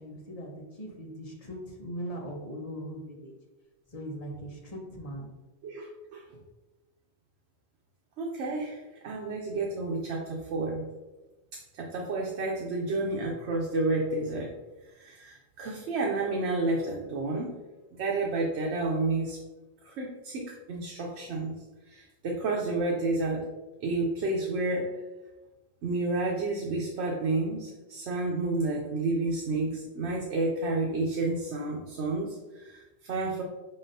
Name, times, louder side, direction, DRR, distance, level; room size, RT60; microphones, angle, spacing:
voice 1, 0.0-3.3 3.9-5.3, equal, 35° left, -1 dB, 0.9 m, -40 dB
voice 2, 5.6-6.2 8.2-10.9 11.5-14.5 15.0-17.6 18.0-19.4 19.8-21.6 21.9-23.5 23.8-24.9 25.8-33.4, right 2 dB, 80° right, -1 dB, 0.9 m, -30 dB
4.9 x 3.8 x 2.6 m, 1.1 s
omnidirectional pair, 1.1 m